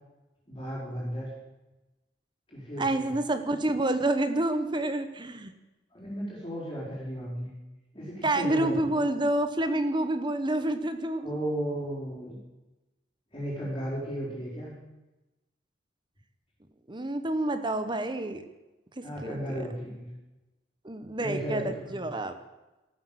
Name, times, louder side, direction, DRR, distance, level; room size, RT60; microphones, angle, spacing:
voice 1, 0.5-1.3 2.5-3.1 5.9-7.5 7.9-9.0 11.2-12.4 13.3-14.7 19.0-20.1 21.2-22.0, equal, 30° left, -6 dB, 4.8 m, -35 dB
voice 2, 2.8-5.5 8.2-11.4 16.9-18.4 19.0-19.6 20.8-22.3, right 1 dB, 25° right, 9 dB, 1.1 m, -28 dB
14.5 x 12.5 x 7.5 m, 1.0 s
head